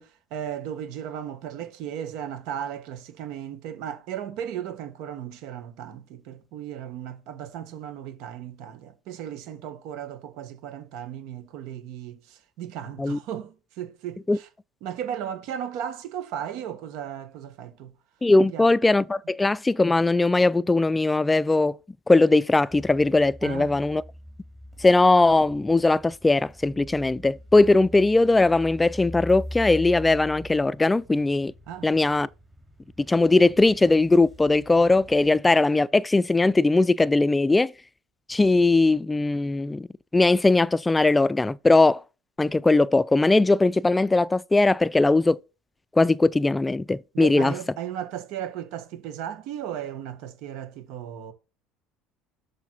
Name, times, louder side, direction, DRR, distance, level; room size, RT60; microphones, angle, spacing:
voice 1, 0.0-14.5 14.8-17.9 18.5-18.7 23.4-23.8 31.7-31.9 47.1-51.3, right 9 dB, 70° right, 1.4 m, -36 dB
voice 2, 18.2-21.8 22.1-24.0 24.8-31.5 31.8-32.3 33.1-37.7 38.3-39.9 40.1-42.0 42.4-45.4 46.0-47.5, left 2 dB, 15° left, 0.4 m, -20 dB
sound 1, 22.7-35.4, equal, 20° right, 2.8 m, -43 dB
7.2 x 5.1 x 4.3 m
supercardioid pair, 100°, 0 cm